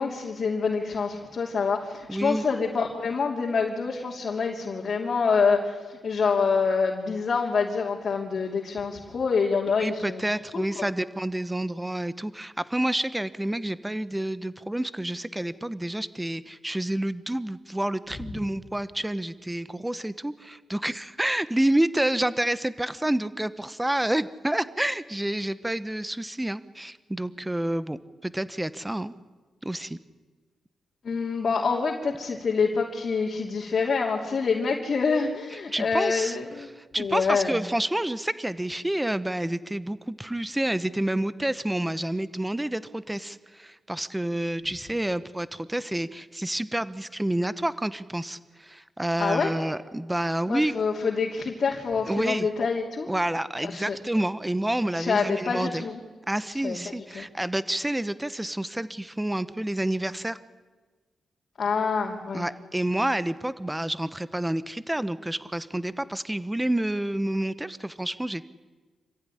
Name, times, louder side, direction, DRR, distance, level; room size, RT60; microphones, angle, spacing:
voice 1, 0.0-10.9 31.0-36.7 37.0-37.6 49.2-49.5 50.5-53.1 53.6-54.0 54.9-56.0 56.5-57.3 61.6-62.5, left 5 dB, 55° left, -1 dB, 3.0 m, -26 dB
voice 2, 2.1-2.4 9.8-29.1 29.6-30.0 35.7-36.4 36.8-50.7 52.1-52.5 53.1-55.8 56.3-60.4 62.3-68.5, right 1 dB, 10° right, 15 dB, 1.0 m, -29 dB
27.0 x 15.5 x 10.0 m, 1.3 s
cardioid pair, 75°, 0 cm